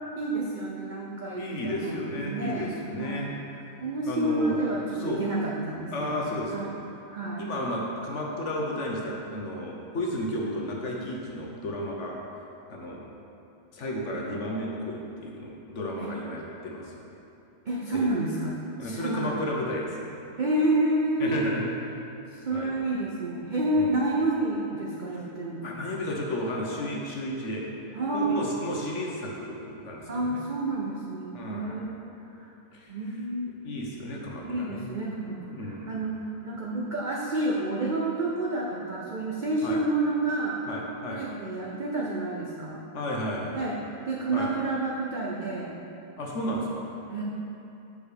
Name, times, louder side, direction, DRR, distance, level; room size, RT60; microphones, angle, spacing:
voice 1, 0.2-2.7 3.0-3.3 3.8-6.2 6.5-6.8 7.1-7.5 14.1-14.2 16.0-16.1 17.7-18.5 18.8-19.3 20.4-21.5 22.3-25.6 26.8-26.9 27.9-28.4 30.1-32.5 32.9-33.6 34.4-40.6 41.1-42.8 43.5-43.8 44.0-45.8 47.1-47.2, right 2 dB, 55° right, -3 dB, 0.5 m, -29 dB
voice 2, 1.3-3.7 4.0-4.6 5.0-5.2 5.9-6.7 7.4-12.2 12.7-13.1 13.7-17.1 17.9-18.1 18.8-20.1 21.2-22.0 22.5-22.7 23.7-24.1 25.1-25.2 25.6-27.7 28.1-30.4 31.3-31.8 32.7-32.9 33.6-34.9 35.2-36.0 39.6-39.8 40.7-41.2 42.9-43.6 44.3-44.5 46.2-46.8, left 1 dB, 50° left, -2 dB, 1.2 m, -33 dB
5.9 x 5.1 x 6.6 m, 2.8 s
omnidirectional pair, 1.8 m